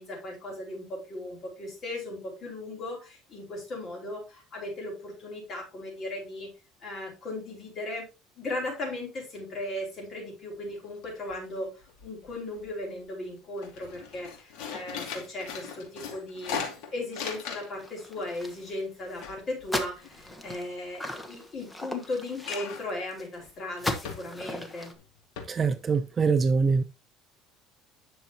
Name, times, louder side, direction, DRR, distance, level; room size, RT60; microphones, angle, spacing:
voice 1, 0.0-6.5 6.8-8.0 8.4-11.7 12.0-16.6 16.9-24.9, left 1 dB, 30° left, 4.8 m, -37 dB
sound 1, 10.7-10.8 11.0-11.6 11.9-12.7 13.1-13.3 13.6-17.9 18.2-20.6 22.4-23.0 23.4-23.5 24.0-24.6 25.0-25.1 25.4-25.5, left 6 dB, 75° left, 2.4 m, -39 dB
sound 2, 17.8-18.8 19.1-19.3 19.6-23.3 23.8-24.9, left 1 dB, 10° left, 1.0 m, -37 dB
voice 2, 25.5-26.8, right 5 dB, 25° right, 0.4 m, -24 dB
10.0 x 6.3 x 2.9 m
cardioid pair, 150°, 0 cm